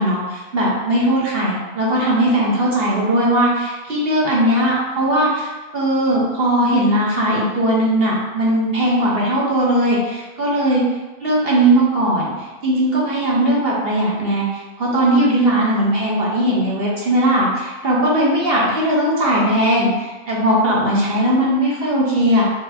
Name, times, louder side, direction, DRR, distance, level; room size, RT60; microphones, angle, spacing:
voice 1, 0.0-10.8 11.2-22.4, right 1 dB, 45° right, -5 dB, 1.0 m, -18 dB
4.6 x 3.3 x 2.7 m, 1.2 s
omnidirectional pair, 1.6 m